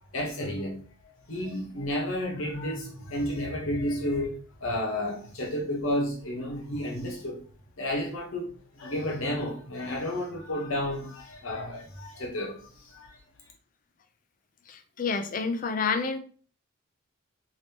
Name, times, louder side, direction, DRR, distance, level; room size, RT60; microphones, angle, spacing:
voice 1, 0.1-0.8 1.3-7.4 7.8-8.5 8.7-13.2, left 1 dB, 75° left, 1.0 m, -31 dB
voice 2, 14.7-16.2, left 5 dB, 40° left, 0.4 m, -29 dB
3.3 x 2.8 x 2.8 m
head